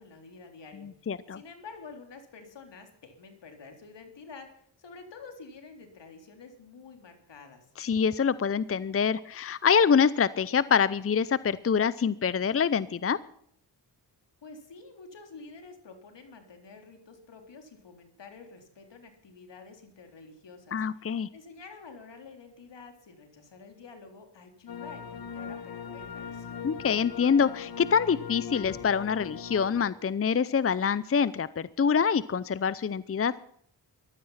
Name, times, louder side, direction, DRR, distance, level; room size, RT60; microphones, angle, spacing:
voice 1, 0.0-4.5 4.8-7.7 14.4-26.7, left 4 dB, 70° left, 5 dB, 3.7 m, -49 dB
voice 2, 1.1-1.4 7.8-13.2 20.7-21.3 26.6-33.3, left 6 dB, 30° left, 18 dB, 0.6 m, -25 dB
sound 1, 24.7-29.9, left 6 dB, 55° left, 1.4 m, -40 dB
15.5 x 12.5 x 5.7 m, 0.68 s
cardioid pair, 55°, 44 cm